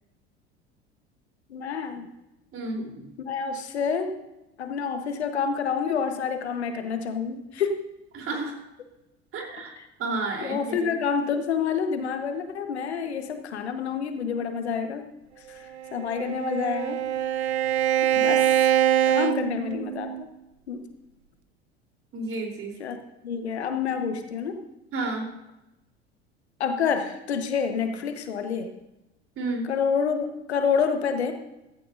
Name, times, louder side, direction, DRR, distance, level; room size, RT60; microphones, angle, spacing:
voice 1, 1.5-2.1 3.2-4.1 4.6-7.9 9.8-9.9 10.4-15.1 15.5-17.0 18.2-18.8 19.1-20.3 20.7-20.8 22.8-23.0 23.2-24.6 26.6-28.7 29.6-31.3, left 6 dB, 75° left, 7 dB, 1.4 m, -28 dB
voice 2, 2.5-3.1 8.1-8.5 9.3-9.7 10.0-10.9 22.1-22.7 24.9-25.3 29.4-29.7, right 2 dB, 40° right, 1 dB, 3.7 m, -31 dB
Bowed string instrument, 15.8-20.3, right 11 dB, 75° right, 0.8 m, -24 dB
15.5 x 15.0 x 2.7 m, 0.93 s
figure-of-eight pair, 70°, 33 cm